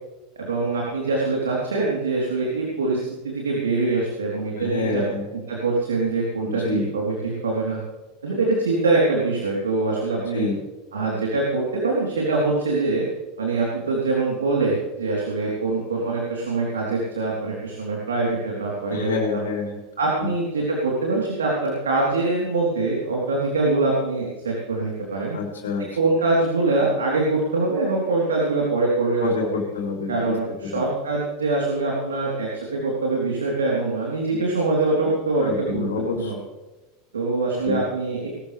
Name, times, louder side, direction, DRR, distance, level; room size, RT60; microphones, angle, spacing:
voice 1, 0.4-5.0 5.5-7.8 8.2-10.5 10.9-13.0 13.4-19.4 20.0-25.4 26.0-29.3 30.1-35.9 36.1-36.4 37.1-38.2, right 3 dB, 80° right, -3 dB, 3.6 m, -23 dB
voice 2, 4.6-5.3 6.4-6.9 10.1-10.6 18.9-19.8 20.2-20.3 25.3-26.0 29.2-30.8 34.3-34.5 35.4-36.3 37.6-37.8, left 4 dB, 80° left, -1 dB, 4.0 m, -28 dB
21.0 x 13.0 x 3.4 m, 1.1 s
hypercardioid pair, 85°, 0 cm